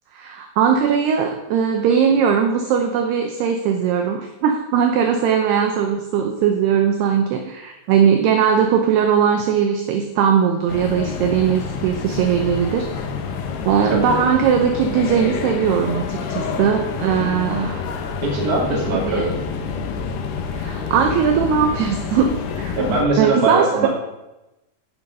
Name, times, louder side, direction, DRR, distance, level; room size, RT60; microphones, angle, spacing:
voice 1, 0.1-13.1 13.7-17.8 19.0-19.3 20.5-22.9 23.2-23.9, right 7 dB, 85° right, 4 dB, 2.3 m, -19 dB
sound 1, 10.7-23.0, left 5 dB, 75° left, 2.5 m, -28 dB
voice 2, 18.2-19.4 22.7-23.9, right 2 dB, 35° right, -2 dB, 1.6 m, -21 dB
15.0 x 6.3 x 5.4 m, 0.98 s
omnidirectional pair, 5.8 m